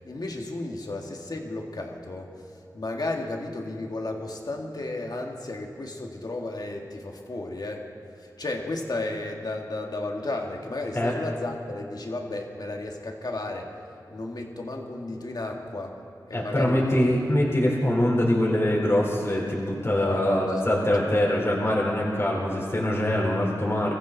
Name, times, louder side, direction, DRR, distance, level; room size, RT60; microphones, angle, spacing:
voice 1, 0.0-2.3 2.7-7.8 8.2-13.7 14.1-15.9 16.3-17.0 20.0-20.3 21.0-21.2, left 2 dB, 60° left, 1 dB, 2.0 m, -33 dB
voice 2, 16.3-23.9, left 1 dB, 35° left, -4 dB, 4.2 m, -23 dB
23.5 x 14.5 x 4.1 m, 2.5 s
cardioid pair, 45°, 8 cm